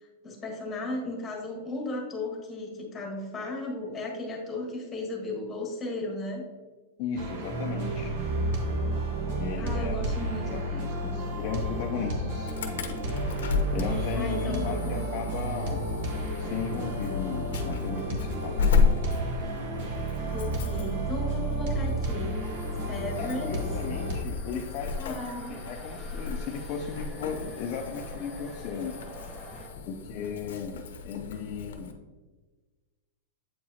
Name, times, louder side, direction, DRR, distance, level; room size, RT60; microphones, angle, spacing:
voice 1, 0.2-6.4 9.6-11.2 14.1-15.0 20.3-22.4 22.9-23.6 24.5-24.6 25.0-25.6, left 2 dB, 10° left, -1 dB, 1.5 m, -35 dB
voice 2, 7.0-8.1 9.4-10.0 10.5-12.5 13.7-15.9 16.4-18.6 23.2-25.2 25.5-29.0 29.9-31.9, left 6 dB, 40° left, 1 dB, 0.5 m, -36 dB
sound 1, 7.2-24.2, right 1 dB, 55° right, 1.3 m, -31 dB
Insect / Alarm, 12.5-31.9, left 5 dB, 90° left, 0.8 m, -33 dB
sound 2, 22.2-29.7, equal, 15° right, 1.2 m, -47 dB
8.2 x 4.8 x 2.8 m, 1.3 s
supercardioid pair, 160°, 0 cm